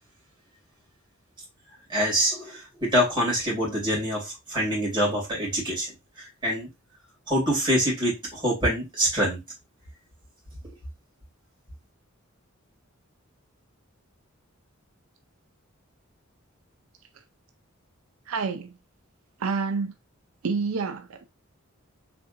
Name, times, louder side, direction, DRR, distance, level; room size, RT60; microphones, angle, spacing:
voice 1, 1.9-5.9 6.2-6.7 7.3-9.4, equal, 20° right, 2.7 m, -25 dB
voice 2, 18.3-18.8 19.4-19.9 20.4-21.2, right 4 dB, 85° right, 0.5 m, -28 dB
4.3 x 3.5 x 2.5 m
head